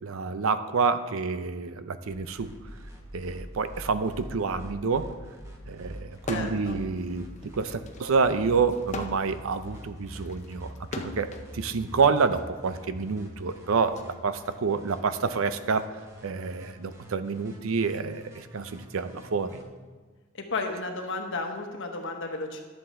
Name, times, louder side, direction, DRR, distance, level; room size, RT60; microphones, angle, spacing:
voice 1, 0.0-2.5 3.1-5.1 5.7-11.3 11.5-15.9 16.2-19.6, right 5 dB, 70° right, 12 dB, 0.5 m, -28 dB
sound 1, 2.1-19.6, equal, 15° right, 1.4 m, -45 dB
sound 2, 6.2-6.7 7.1-11.5 12.4-14.0, left 3 dB, 35° left, 0.7 m, -40 dB
voice 2, 6.3-6.7 20.3-22.6, left 3 dB, 65° left, 3 dB, 1.2 m, -33 dB
11.0 x 7.7 x 3.7 m, 1.4 s
head